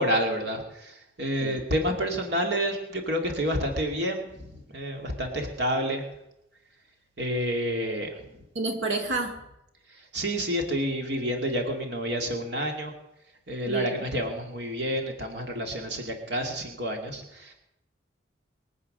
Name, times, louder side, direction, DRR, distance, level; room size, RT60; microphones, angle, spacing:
voice 1, 0.0-6.0 7.2-8.2 9.9-12.9 13.5-17.5, equal, 55° right, 3 dB, 2.3 m, -29 dB
voice 2, 8.5-9.4 13.6-14.1, right 3 dB, 70° right, 4 dB, 2.4 m, -29 dB
23.0 x 8.6 x 6.6 m, 0.88 s
head